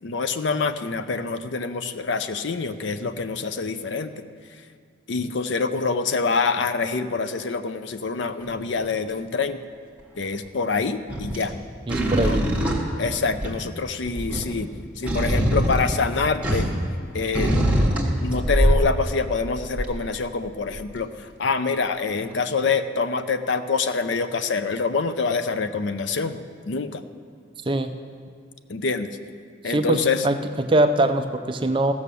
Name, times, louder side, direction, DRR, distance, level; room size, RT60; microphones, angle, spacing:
voice 1, 0.0-4.2 5.1-9.6 10.2-11.6 12.1-12.7 13.0-14.7 15.0-16.7 17.1-17.5 18.2-26.4 26.7-27.0 28.7-29.2 29.6-30.3, left 4 dB, 60° left, 11 dB, 0.5 m, -26 dB
sound 1, 8.4-8.8 11.1-11.5 11.9-13.7 14.1-16.9 17.3-19.0 19.7-20.0 20.7-20.8, right 1 dB, 5° right, 1.3 m, -23 dB
voice 2, 11.9-12.5 27.7-27.9 29.7-31.9, right 1 dB, 25° right, 7 dB, 0.5 m, -22 dB
15.0 x 6.3 x 6.9 m, 2.1 s
head